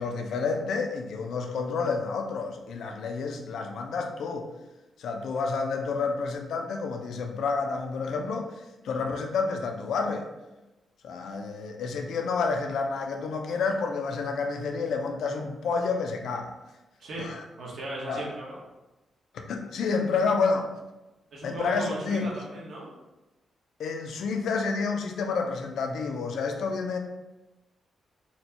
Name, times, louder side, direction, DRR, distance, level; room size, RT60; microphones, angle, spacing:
voice 1, 0.0-4.5 5.0-8.5 8.8-10.3 11.0-16.5 17.2-17.4 18.1-18.2 19.3-20.7 21.4-22.3 23.8-27.0, left 4 dB, 75° left, 4 dB, 0.4 m, -29 dB
voice 2, 17.0-18.6 21.3-22.9, right 1 dB, 60° right, -4 dB, 1.1 m, -37 dB
4.2 x 2.2 x 2.8 m, 1.0 s
wide cardioid pair, 150°, 0 cm